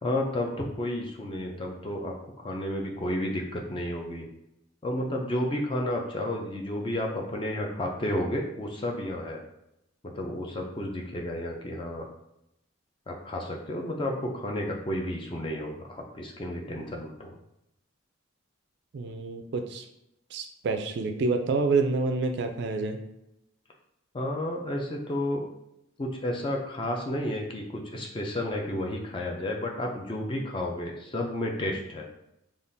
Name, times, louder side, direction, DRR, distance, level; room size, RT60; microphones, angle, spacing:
voice 1, 0.0-4.3 4.8-9.4 10.0-12.1 13.1-17.4 24.1-25.5 26.0-32.1, left 1 dB, 25° left, 1 dB, 0.3 m, -31 dB
voice 2, 18.9-19.8 20.3-23.0, right 3 dB, 55° right, 6 dB, 0.3 m, -28 dB
3.5 x 2.3 x 2.6 m, 0.83 s
head